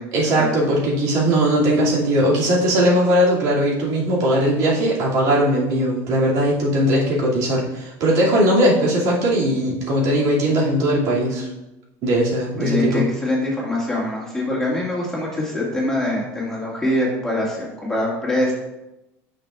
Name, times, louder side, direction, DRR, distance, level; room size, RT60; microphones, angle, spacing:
voice 1, 0.1-11.5 12.0-13.0, equal, 60° right, -5 dB, 2.5 m, -19 dB
voice 2, 12.6-18.5, left 1 dB, 5° left, -5 dB, 2.0 m, -23 dB
9.0 x 6.1 x 2.4 m, 0.95 s
supercardioid pair, 135°, 7 cm